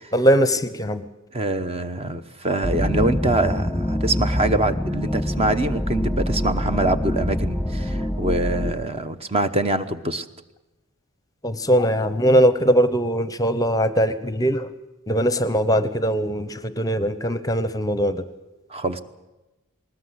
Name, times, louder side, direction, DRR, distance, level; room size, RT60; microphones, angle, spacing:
voice 1, 0.1-1.0 11.4-14.7 15.1-18.2, equal, 15° left, 13 dB, 0.8 m, -20 dB
voice 2, 1.3-10.3 18.7-19.0, right 2 dB, 30° right, 10 dB, 1.0 m, -24 dB
sound 1, 2.6-8.7, left 1 dB, ahead, 1.5 m, -25 dB
19.5 x 19.5 x 8.1 m, 1.0 s
head